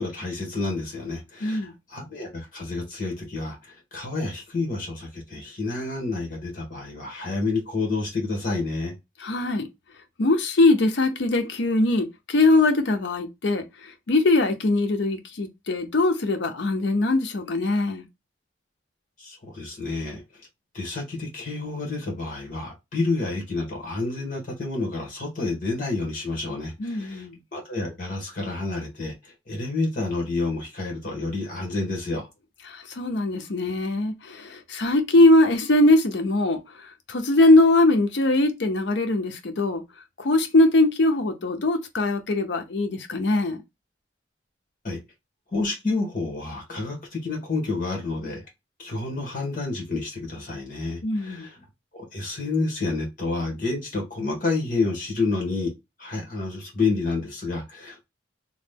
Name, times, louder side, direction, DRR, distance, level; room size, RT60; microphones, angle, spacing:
voice 1, 0.0-8.9 19.2-20.2 20.7-27.3 27.5-32.3 44.8-45.0 45.5-48.4 48.8-51.6 51.9-55.7 56.0-58.1, left 3 dB, 45° left, 1.4 m, -29 dB
voice 2, 1.4-1.7 9.2-9.7 10.2-13.6 14.1-18.1 26.8-27.4 32.7-36.6 37.1-39.8 40.2-43.6 51.0-51.5, left 2 dB, 70° left, 0.6 m, -21 dB
3.0 x 2.2 x 3.4 m
head